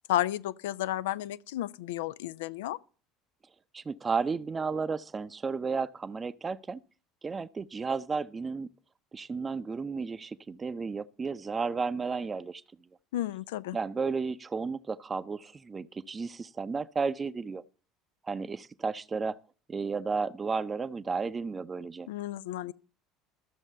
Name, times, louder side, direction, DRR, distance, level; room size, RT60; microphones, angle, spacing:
voice 1, 0.1-2.8 13.1-13.8 22.1-22.7, left 13 dB, 65° left, 0.5 m, -32 dB
voice 2, 3.7-6.8 7.2-8.7 9.1-12.6 13.7-17.6 18.3-19.4 19.7-22.1, right 4 dB, 25° right, 0.7 m, -33 dB
13.0 x 7.1 x 6.7 m
figure-of-eight pair, 65°, 0 cm